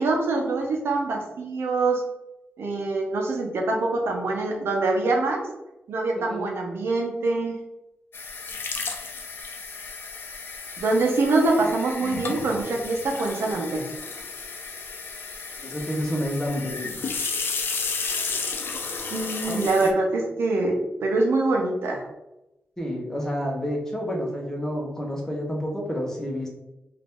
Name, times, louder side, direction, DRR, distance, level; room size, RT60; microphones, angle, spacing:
voice 1, 0.0-2.0 2.6-5.4 5.9-7.6 10.8-13.9 19.1-22.0, right 2 dB, 85° right, 0 dB, 0.9 m, -24 dB
voice 2, 6.1-6.5 15.6-17.2 19.4-19.9 22.8-26.5, equal, 15° left, -1 dB, 1.2 m, -29 dB
sound 1, 8.1-19.9, left 4 dB, 65° left, 0.6 m, -33 dB
3.9 x 2.8 x 3.6 m, 0.94 s
cardioid pair, 85°, 4 cm